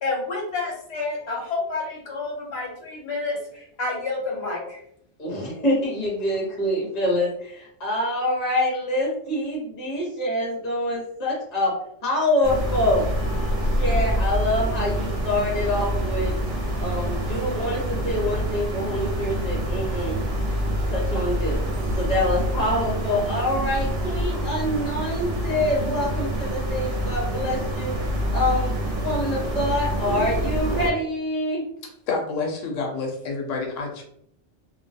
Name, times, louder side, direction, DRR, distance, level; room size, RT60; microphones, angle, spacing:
voice 1, 0.0-4.8, left 3 dB, 60° left, -2 dB, 1.0 m, -29 dB
voice 2, 5.2-11.7 12.0-13.0 13.8-16.4 16.8-20.2 20.9-21.6 22.0-31.6, left 1 dB, 35° left, -4 dB, 1.0 m, -26 dB
sound 1, 12.4-30.9, equal, 65° right, 0.9 m, -26 dB
voice 3, 32.1-34.0, left 4 dB, 90° left, 1 dB, 0.9 m, -28 dB
2.4 x 2.2 x 2.6 m, 0.70 s
omnidirectional pair, 1.2 m